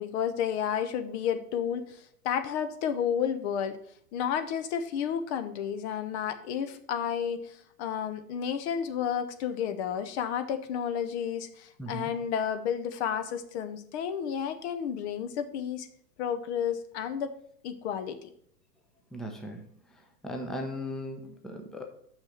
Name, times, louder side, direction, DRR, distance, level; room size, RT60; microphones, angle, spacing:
voice 1, 0.0-3.8 4.1-15.9 16.2-17.3 17.6-18.3, left 8 dB, 45° left, 10 dB, 0.8 m, -31 dB
voice 2, 11.8-12.1 19.1-19.6 20.2-21.8, equal, ahead, 3 dB, 0.7 m, -37 dB
6.1 x 5.6 x 6.5 m, 0.68 s
hypercardioid pair, 120°, 48 cm